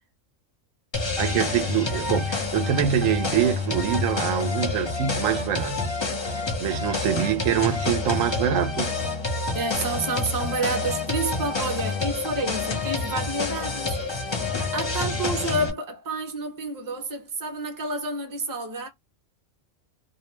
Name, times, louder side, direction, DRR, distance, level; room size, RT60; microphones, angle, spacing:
sound 1, 0.9-15.7, left 3 dB, 30° left, 0.5 m, -28 dB
voice 1, 1.2-9.1, right 10 dB, 80° right, 1.0 m, -25 dB
voice 2, 9.5-14.4 14.7-18.9, right 2 dB, 20° right, 0.7 m, -29 dB
2.5 x 2.1 x 3.0 m
omnidirectional pair, 1.3 m